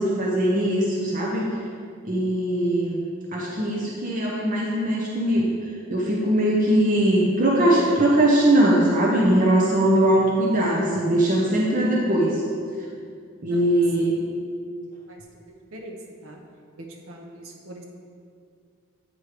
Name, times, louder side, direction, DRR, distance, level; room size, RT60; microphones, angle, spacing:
voice 1, 0.0-1.4 2.1-3.0 3.3-5.5 5.9-12.3 13.4-14.2, right 1 dB, 40° right, -3 dB, 0.7 m, -21 dB
voice 2, 13.5-14.1 15.1-16.4 16.8-17.8, right 1 dB, 75° right, 1 dB, 0.7 m, -43 dB
8.9 x 3.2 x 4.9 m, 2.3 s
head